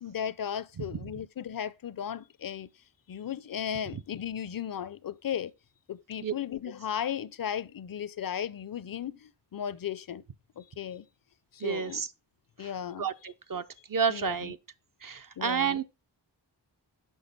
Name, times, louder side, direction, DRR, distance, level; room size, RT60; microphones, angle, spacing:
voice 1, 0.0-2.7 3.1-5.5 5.9-10.2 10.6-11.1 11.5-12.0 12.6-13.1 14.1-14.5 15.4-15.8, left 9 dB, 55° left, 0.5 m, -36 dB
voice 2, 11.6-12.1 12.6-12.7 13.0-13.6 13.9-14.6 15.0-15.8, right 7 dB, 50° right, 0.5 m, -30 dB
6.2 x 5.5 x 3.9 m
cardioid pair, 45°, 43 cm